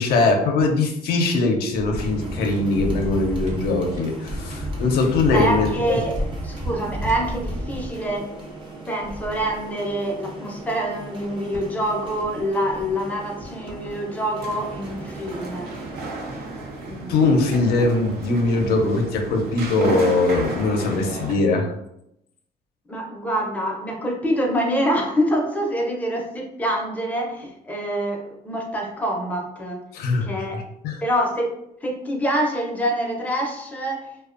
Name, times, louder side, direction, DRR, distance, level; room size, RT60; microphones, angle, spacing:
voice 1, 0.0-6.0 17.1-21.7 29.9-31.0, left 3 dB, 85° left, 2 dB, 0.5 m, -21 dB
sound 1, 1.8-7.9, equal, 50° right, 1.1 m, -31 dB
sound 2, 1.9-16.0, right 2 dB, 35° right, 0.6 m, -37 dB
voice 2, 5.3-6.1 6.4-8.3 8.9-15.7 16.9-17.5 22.9-29.8 30.2-30.6 31.0-31.5 31.8-34.3, equal, 10° left, 0 dB, 0.5 m, -26 dB
sound 3, 14.4-21.3, right 2 dB, 80° right, 0.5 m, -33 dB
2.4 x 2.1 x 2.4 m, 0.79 s
cardioid pair, 115°, 16 cm